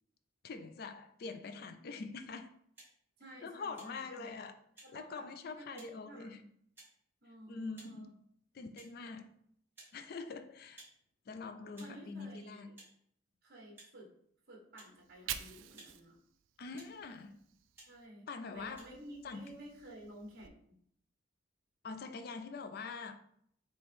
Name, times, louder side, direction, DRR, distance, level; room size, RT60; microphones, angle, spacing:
voice 1, 0.4-2.5 3.4-4.6 4.9-6.4 7.5-8.2 8.5-9.3 9.9-10.8 11.3-12.7 16.6-17.4 18.3-18.9 19.2-19.6 21.8-23.2, left 4 dB, 50° left, 9 dB, 0.3 m, -44 dB
sound 1, 2.7-2.9 3.7-3.9 4.8-4.9 5.8-5.9 6.8-6.9 7.7-7.9 8.7-8.9 9.7-10.0 10.7-10.9 11.7-11.9 12.8-12.9 13.7-13.9 14.8-14.9 15.7-15.9 16.7-17.0 17.7-17.9 18.7-18.8, right 2 dB, 10° right, 1.4 m, -56 dB
voice 2, 3.2-4.5 4.8-5.3 5.6-6.5 7.2-8.1 11.8-12.7 13.4-14.1 14.5-16.2 17.9-18.3 18.5-20.7, right 1 dB, 50° right, -2 dB, 1.2 m, -53 dB
Fire, 14.9-18.1 18.4-20.5, right 10 dB, 75° right, 0.3 m, -49 dB
4.3 x 2.9 x 3.3 m, 0.68 s
head